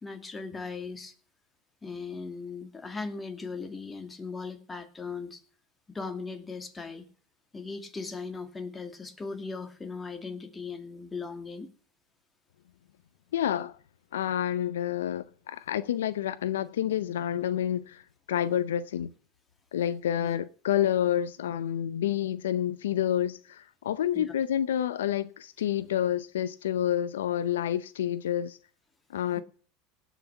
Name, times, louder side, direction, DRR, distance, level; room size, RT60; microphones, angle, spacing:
voice 1, 0.0-1.1 1.8-5.4 5.9-7.1 7.5-11.7 20.2-20.4 24.1-24.2 29.4-29.5, left 4 dB, 20° left, 2.5 m, -38 dB
voice 2, 13.3-13.8 14.1-18.0 18.3-19.1 19.7-28.6 29.1-29.4, left 10 dB, 85° left, 0.6 m, -29 dB
17.5 x 6.0 x 8.2 m
hypercardioid pair, 85°, 0 cm